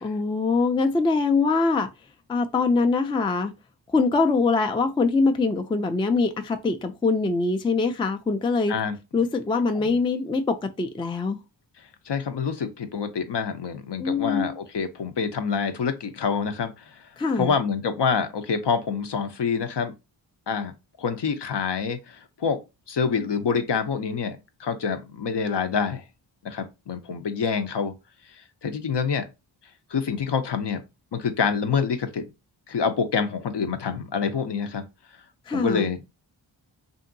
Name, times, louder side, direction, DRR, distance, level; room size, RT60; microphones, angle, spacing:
voice 1, 0.0-1.9 2.3-3.5 3.9-8.8 9.1-11.4 14.0-14.5 17.2-17.5 35.5-35.9, left 4 dB, 10° left, 0.3 m, -23 dB
voice 2, 12.1-17.0 17.4-19.9 20.5-20.7 21.0-22.6 22.9-26.0 26.4-27.9 28.6-29.3 29.9-30.8 31.1-32.2 32.7-34.8 35.5-36.0, left 6 dB, 60° left, 0.6 m, -26 dB
2.8 x 2.6 x 2.5 m
cardioid pair, 45°, 47 cm